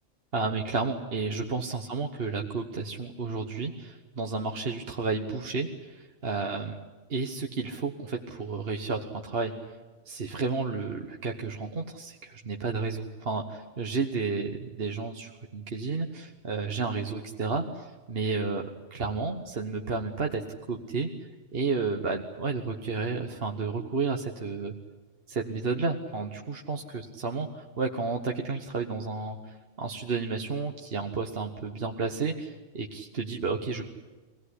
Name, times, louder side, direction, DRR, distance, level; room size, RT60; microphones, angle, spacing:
voice 1, 0.3-6.8 7.1-9.7 10.1-24.7 25.3-27.5 27.8-33.8, right 4 dB, 50° right, 3 dB, 1.5 m, -32 dB
24.5 x 18.0 x 9.9 m, 1.3 s
omnidirectional pair, 1.3 m